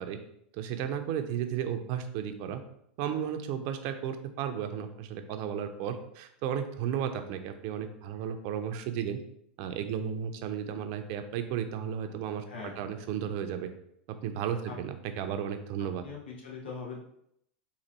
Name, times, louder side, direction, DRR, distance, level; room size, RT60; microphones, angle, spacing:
voice 1, 0.5-2.6 3.0-9.2 9.6-12.4 12.8-13.7 14.2-16.0, right 9 dB, 55° right, 7 dB, 0.6 m, -34 dB
voice 2, 12.5-12.9 14.7-14.8 15.8-17.0, left 5 dB, 80° left, -3 dB, 1.0 m, -42 dB
3.9 x 2.8 x 4.2 m, 0.72 s
hypercardioid pair, 95°, 6 cm